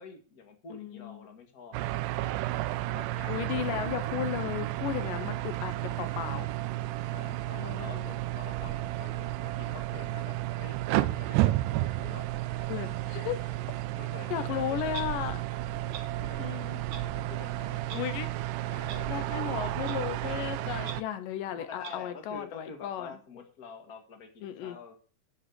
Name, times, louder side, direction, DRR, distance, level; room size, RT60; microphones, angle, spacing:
voice 1, 0.0-1.8 2.1-2.2 2.6-4.1 7.0-12.3 14.0-14.9 16.2-17.9 18.7-19.1 21.5-25.0, left 5 dB, 55° left, 5 dB, 0.9 m, -48 dB
voice 2, 0.7-1.3 3.3-6.5 7.6-8.1 12.7-13.5 14.3-15.4 15.8-15.9 16.4-16.8 17.9-18.3 19.1-23.1 24.4-24.8, left 10 dB, 75° left, 11 dB, 2.2 m, -35 dB
sound 1, 1.7-21.0, right 16 dB, 80° right, 1.9 m, -32 dB
Clock, 14.9-15.1 15.9-16.0 16.9-17.0 17.9-18.0 18.9-19.0 19.9-20.0 20.8-20.9 21.8-21.9, right 6 dB, 55° right, 1.7 m, -40 dB
11.5 x 5.4 x 7.9 m, 0.38 s
omnidirectional pair, 4.4 m